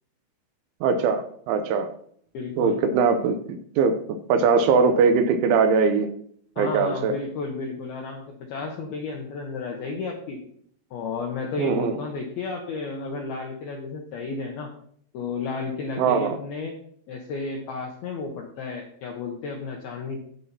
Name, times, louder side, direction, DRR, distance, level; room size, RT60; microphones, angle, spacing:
voice 1, 0.8-1.9 2.6-3.4 3.8-6.1 6.6-7.1 11.6-11.9 16.0-16.4, right 5 dB, 80° right, 7 dB, 2.9 m, -21 dB
voice 2, 2.3-2.8 6.6-10.4 10.9-14.7 15.1-16.7 17.1-20.2, left 4 dB, 80° left, 0 dB, 2.2 m, -32 dB
15.5 x 5.9 x 2.8 m, 0.62 s
omnidirectional pair, 5.8 m